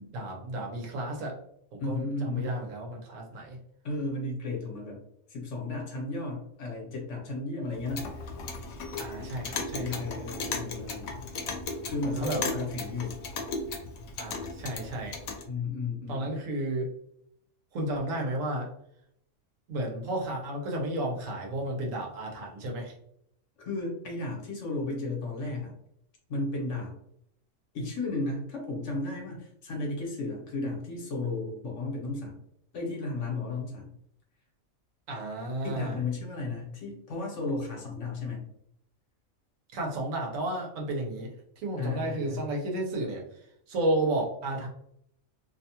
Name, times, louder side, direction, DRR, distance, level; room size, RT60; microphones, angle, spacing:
voice 1, 0.0-1.3 1.7-3.6 9.0-10.0 12.1-12.4 14.2-15.2 16.1-16.9 17.7-18.7 19.7-22.9 35.1-36.0 39.7-43.2 43.7-44.7, right 1 dB, 70° right, 0 dB, 1.1 m, -32 dB
voice 2, 1.8-2.5 3.8-5.0 5.3-8.1 9.7-11.3 11.9-13.2 15.5-16.3 23.6-25.7 26.3-26.9 27.7-32.4 32.7-33.9 35.6-38.4 41.8-42.4, left 3 dB, 65° left, -1 dB, 1.2 m, -34 dB
Clock, 7.7-15.4, left 3 dB, 90° left, 1.0 m, -36 dB
2.8 x 2.2 x 2.7 m, 0.73 s
omnidirectional pair, 1.4 m